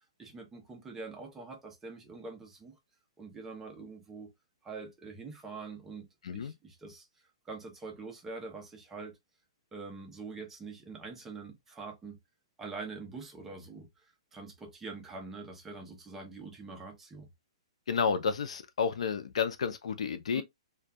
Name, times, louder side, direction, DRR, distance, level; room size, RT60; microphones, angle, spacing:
voice 1, 0.2-2.8 3.2-4.3 4.6-7.1 7.5-9.2 9.7-12.2 12.6-13.9 14.3-17.3 20.3-20.4, right 4 dB, 10° right, 0.5 m, -44 dB
voice 2, 17.9-20.4, left 6 dB, 80° left, 0.5 m, -31 dB
2.3 x 2.2 x 2.6 m
hypercardioid pair, 160°, 3 cm